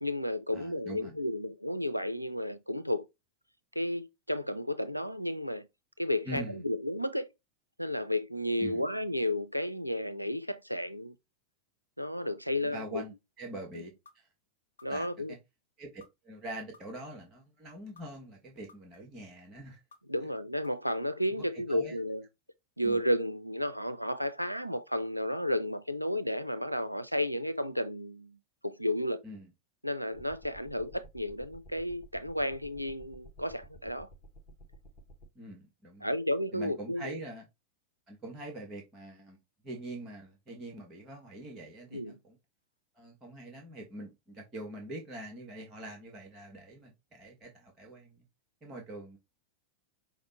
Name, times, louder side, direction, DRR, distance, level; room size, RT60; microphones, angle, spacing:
voice 1, 0.0-3.0 3.8-5.6 6.0-7.3 7.8-11.1 12.0-13.0 14.8-15.3 20.1-22.2 22.8-28.4 28.6-29.2 29.8-34.1 36.0-37.2 41.9-42.2, left 1 dB, 90° right, 0.3 m, -32 dB
voice 2, 0.5-1.1 6.2-6.6 8.6-8.8 12.6-14.3 14.9-15.4 15.8-19.8 20.2-20.3 21.4-22.0 22.8-23.0 29.2-29.5 35.3-36.1 36.5-37.5 38.1-39.4 39.6-42.4 42.9-48.2 48.6-49.2, right 1 dB, 25° right, 1.3 m, -44 dB
sound 1, 14.1-14.2 14.8-15.3 16.0-16.1 16.7-17.3 18.0-18.1 18.7-19.2 19.9-20.0 20.6-21.2, left 4 dB, 70° left, 0.7 m, -56 dB
sound 2, 30.1-35.3, right 1 dB, 40° left, 1.0 m, -54 dB
5.7 x 2.1 x 4.0 m
figure-of-eight pair, 90°, 0 cm